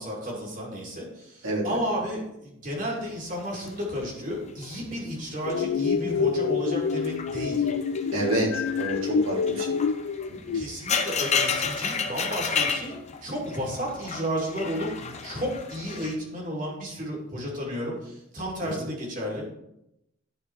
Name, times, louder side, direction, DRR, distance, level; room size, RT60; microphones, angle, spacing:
voice 1, 0.0-7.7 10.5-19.5, equal, 40° right, -2 dB, 2.6 m, -32 dB
voice 2, 1.4-1.8 8.1-9.7 10.4-10.5 18.6-18.7, right 1 dB, 75° right, -3 dB, 3.0 m, -28 dB
sound 1, 3.3-5.7 6.0-6.4 6.8-16.1, left 5 dB, 30° left, 0.6 m, -32 dB
sound 2, 5.4-10.6, left 5 dB, 75° left, 0.3 m, -27 dB
11.0 x 4.4 x 4.6 m, 0.82 s
head